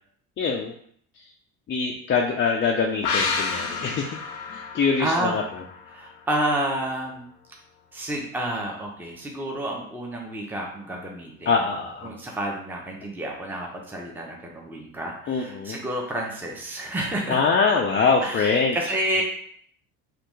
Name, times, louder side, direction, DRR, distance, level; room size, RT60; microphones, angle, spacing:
voice 1, 0.4-0.7 1.7-4.1 4.5-5.4 11.5-12.1 15.3-15.8 17.3-18.8, left 5 dB, 30° left, 0 dB, 0.4 m, -23 dB
sound 1, 3.0-6.5 6.8-6.9, left 4 dB, 85° left, 0.7 m, -30 dB
voice 2, 5.0-5.4 5.9-7.3 7.9-11.6 12.0-17.4 18.2-19.2, right 1 dB, 5° right, -1 dB, 0.7 m, -30 dB
3.3 x 2.5 x 3.1 m, 0.63 s
supercardioid pair, 75°, 41 cm